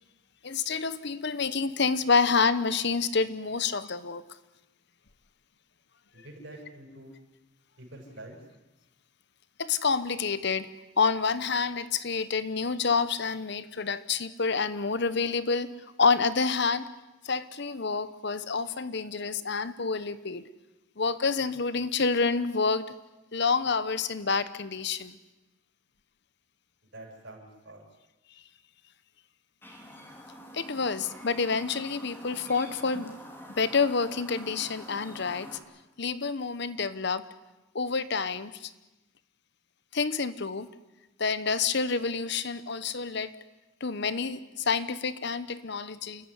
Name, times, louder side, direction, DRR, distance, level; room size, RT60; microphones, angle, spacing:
voice 1, 0.4-4.2 9.6-10.7 11.0-15.7 16.0-16.9 17.2-20.5 21.0-22.8 23.3-25.2 30.5-33.1 33.6-35.6 36.0-37.3 37.7-38.7 39.9-40.7 41.2-43.3 43.8-46.3, left 5 dB, 60° left, 15 dB, 1.0 m, -28 dB
voice 2, 6.1-7.1 7.8-8.4 26.9-27.8, right 1 dB, 60° right, 1 dB, 6.8 m, -46 dB
Chirp tweet, 29.6-35.6, equal, 10° left, 3.5 m, -46 dB
29.0 x 14.5 x 9.9 m, 1.0 s
head